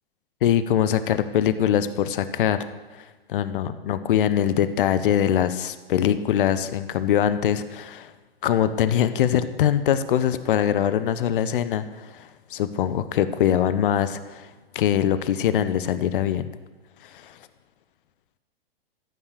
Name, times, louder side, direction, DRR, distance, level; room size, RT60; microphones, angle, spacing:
voice 1, 0.4-2.6 3.0-8.1 8.4-14.5 14.7-16.5 17.1-17.4, left 10 dB, 60° left, 13 dB, 1.0 m, -23 dB
14.5 x 8.8 x 6.6 m, 1.2 s
figure-of-eight pair, 105°, 30 cm